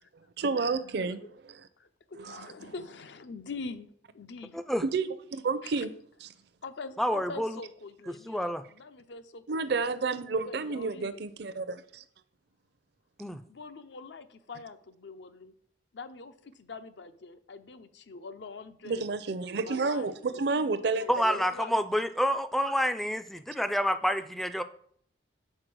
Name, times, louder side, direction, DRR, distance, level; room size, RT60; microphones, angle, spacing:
voice 1, 0.4-1.2 2.2-2.7 4.8-5.9 6.2-6.3 9.5-12.0 18.8-21.4, right 4 dB, 60° right, 13 dB, 0.5 m, -30 dB
voice 2, 1.8-3.9 4.1-4.6 5.6-5.9 6.6-9.6 10.4-11.2 13.5-15.5 15.9-19.1 19.6-22.1, left 4 dB, 65° left, 11 dB, 0.6 m, -44 dB
voice 3, 7.0-7.5 8.3-8.6 13.2-13.4 21.1-24.6, equal, ahead, 11 dB, 0.3 m, -28 dB
6.6 x 4.4 x 6.1 m, 0.63 s
head